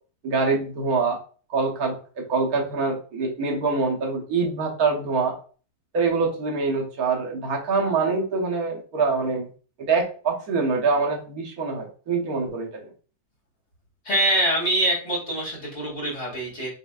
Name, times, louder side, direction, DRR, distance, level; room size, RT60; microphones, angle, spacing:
voice 1, 0.2-1.2 1.5-5.3 5.9-9.5 9.9-12.7, right 4 dB, 70° right, 0 dB, 1.5 m, -24 dB
voice 2, 14.0-16.7, right 1 dB, 50° left, -5 dB, 2.5 m, -24 dB
6.1 x 3.2 x 2.4 m, 0.39 s
omnidirectional pair, 1.6 m